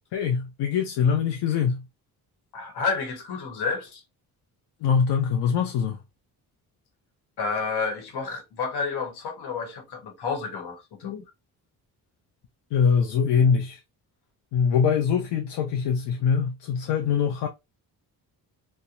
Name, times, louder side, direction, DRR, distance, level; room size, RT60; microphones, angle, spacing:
voice 1, 0.1-1.8 4.8-6.0 12.7-13.8 14.5-17.5, left 6 dB, 85° left, 0.5 m, -23 dB
voice 2, 2.5-4.0 7.4-11.3, left 5 dB, 70° left, 1.1 m, -30 dB
2.8 x 2.1 x 2.4 m
cardioid pair, 75°, 40 cm